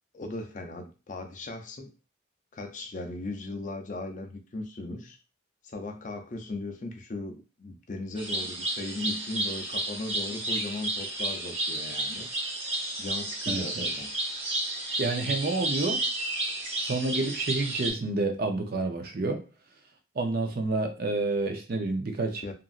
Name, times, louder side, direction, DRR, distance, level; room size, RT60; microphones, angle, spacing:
voice 1, 0.1-1.9 2.5-5.2 5.6-12.3 13.0-14.1 22.4-22.5, left 2 dB, 40° left, 0.5 m, -37 dB
sound 1, 8.2-17.9, right 2 dB, 30° right, 0.8 m, -32 dB
voice 2, 13.5-13.9 15.0-16.0 16.8-19.4 20.2-22.4, right 3 dB, 45° right, 0.5 m, -29 dB
2.9 x 2.5 x 2.4 m
head